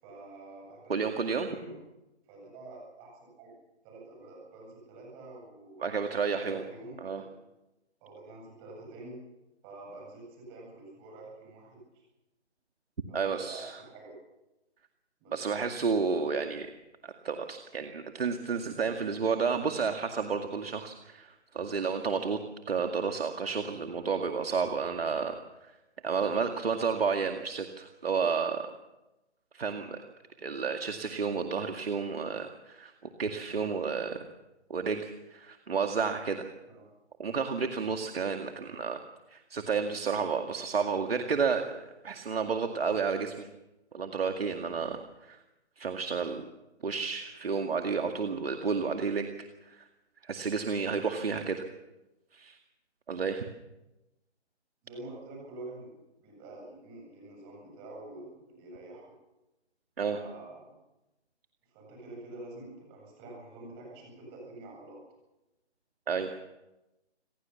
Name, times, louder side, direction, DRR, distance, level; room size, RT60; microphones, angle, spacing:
voice 1, 0.0-1.8 2.3-3.5 3.8-7.3 8.0-9.2 9.6-12.0 13.1-14.1 15.2-15.5 36.7-36.9 54.8-59.1 60.1-60.7 61.7-65.0, right 2 dB, 15° right, 0 dB, 7.9 m, -47 dB
voice 2, 0.9-1.5 5.8-6.6 7.0-7.2 13.1-13.8 15.3-16.7 17.0-22.4 22.7-25.4 26.0-28.7 29.5-30.0 30.4-32.9 33.2-34.2 34.7-36.5 37.2-39.0 39.3-43.5 43.9-45.4 45.8-46.5 46.8-49.3 49.6-49.9 50.2-51.6 52.3-52.6 53.1-53.4 60.0-60.2 66.1-66.4, right 5 dB, 55° right, 5 dB, 2.2 m, -31 dB
27.0 x 16.5 x 7.1 m, 0.99 s
figure-of-eight pair, 160°, 35 cm